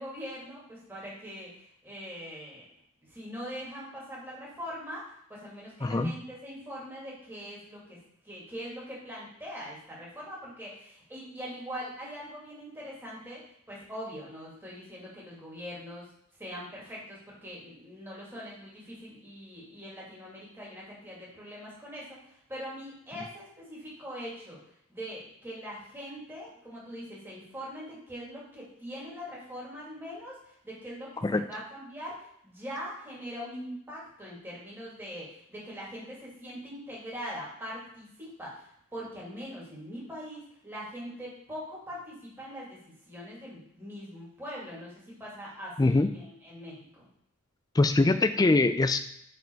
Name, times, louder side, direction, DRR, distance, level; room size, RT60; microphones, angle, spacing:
voice 1, 0.0-2.7 3.1-8.0 8.2-16.1 16.4-24.6 24.9-42.8 43.1-47.1, equal, 10° right, -6 dB, 2.3 m, -42 dB
voice 2, 5.8-6.1 31.2-31.4 45.8-46.1 47.7-49.0, left 2 dB, 20° left, 10 dB, 0.4 m, -23 dB
5.7 x 4.9 x 4.5 m, 0.73 s
head